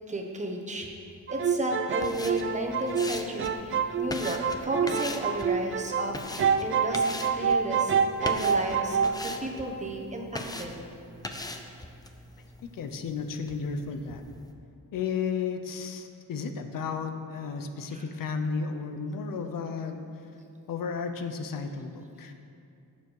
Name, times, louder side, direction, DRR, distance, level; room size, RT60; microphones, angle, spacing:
voice 1, 0.1-0.9 1.3-7.1 7.3-7.9 8.2-10.8 17.9-18.0, right 1 dB, 20° right, 1 dB, 1.2 m, -33 dB
sound 1, 1.3-6.1 6.4-9.2, right 6 dB, 35° right, 0.4 m, -27 dB
sound 2, 1.9-14.5, left 2 dB, 10° left, 0.6 m, -41 dB
voice 2, 12.6-14.2 14.9-20.0 20.7-22.3, left 5 dB, 65° left, 7 dB, 0.9 m, -33 dB
17.5 x 7.1 x 4.8 m, 2.5 s
wide cardioid pair, 170°, 35 cm